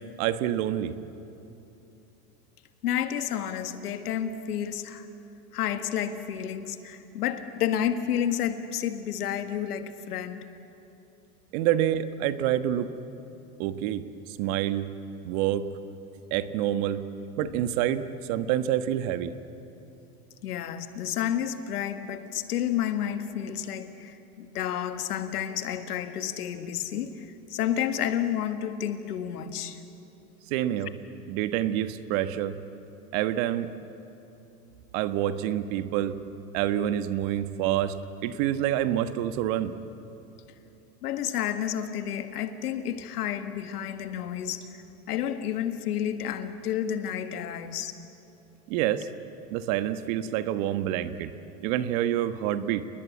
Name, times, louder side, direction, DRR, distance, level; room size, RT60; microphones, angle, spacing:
voice 1, 0.2-0.9 11.5-12.9 13.6-14.0 14.4-14.9 15.2-15.7 16.3-17.0 17.4-19.3 30.5-30.9 31.3-32.6 33.1-33.7 34.9-36.2 36.5-38.0 38.2-39.7 48.7-49.1 49.5-51.3 51.6-52.9, right 12 dB, 65° right, 11 dB, 1.4 m, -27 dB
voice 2, 2.8-5.1 5.5-10.5 17.4-17.5 20.4-29.8 41.0-44.6 45.1-47.9, left 10 dB, 85° left, 9 dB, 1.7 m, -30 dB
28.5 x 20.0 x 8.4 m, 3.0 s
hypercardioid pair, 100°, 45 cm